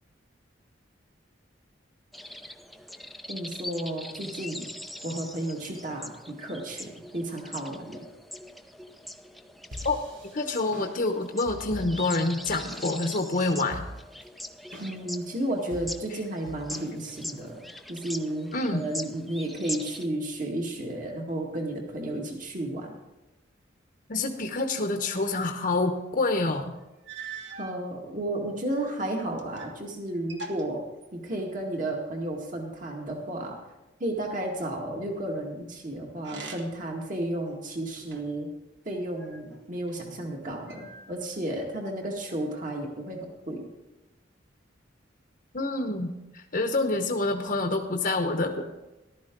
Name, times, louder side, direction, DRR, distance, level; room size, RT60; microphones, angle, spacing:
sound 1, 2.1-20.1, left 1 dB, ahead, 0.5 m, -42 dB
voice 1, 3.3-4.7 5.0-8.0 14.8-17.6 17.9-23.0 27.6-30.8 31.1-33.6 34.0-38.5 38.9-43.2 43.5-43.6, right 1 dB, 45° right, 1 dB, 2.1 m, -33 dB
sound 2, 9.7-13.0 13.2-13.3 13.7-14.2 14.7-15.2 15.7-17.5, left 1 dB, 85° right, 3.0 m, -42 dB
voice 2, 10.3-13.8 18.5-18.9 24.1-26.7 45.5-48.6, left 2 dB, 50° left, 4 dB, 0.9 m, -27 dB
sound 3, 27.0-27.8 28.6-29.8 30.1-31.6 36.2-36.9 37.5-38.5 39.2-40.0 40.7-41.4, right 4 dB, 65° right, 1.4 m, -44 dB
14.5 x 12.0 x 3.9 m, 1.0 s
head